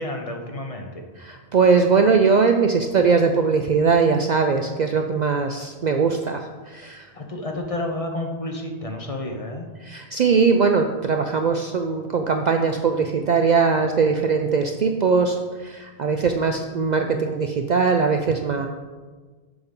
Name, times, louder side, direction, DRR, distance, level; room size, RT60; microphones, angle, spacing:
voice 1, 0.0-1.0 7.1-9.7, left 1 dB, 35° left, 3 dB, 0.8 m, -30 dB
voice 2, 1.2-7.1 9.8-18.7, right 5 dB, 55° right, 5 dB, 0.5 m, -20 dB
7.0 x 5.3 x 5.3 m, 1.4 s
omnidirectional pair, 1.1 m